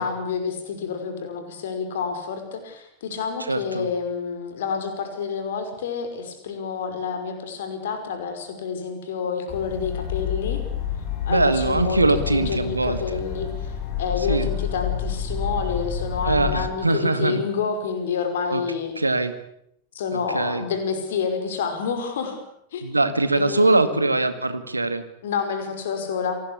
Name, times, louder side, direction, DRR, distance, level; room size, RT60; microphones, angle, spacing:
voice 1, 0.0-10.6 11.3-18.9 19.9-22.4 22.7-22.8 23.3-24.1 25.2-26.4, left 6 dB, 60° left, 7 dB, 5.5 m, -28 dB
voice 2, 3.5-3.9 11.3-13.0 14.3-14.5 16.2-17.4 18.5-18.6 19.0-19.3 20.1-20.6 22.8-25.0, right 2 dB, 80° right, 11 dB, 2.1 m, -22 dB
sound 1, 9.5-16.6, left 7 dB, 35° left, 7.5 m, -29 dB
26.5 x 19.5 x 8.4 m, 0.76 s
figure-of-eight pair, 90°, 0 cm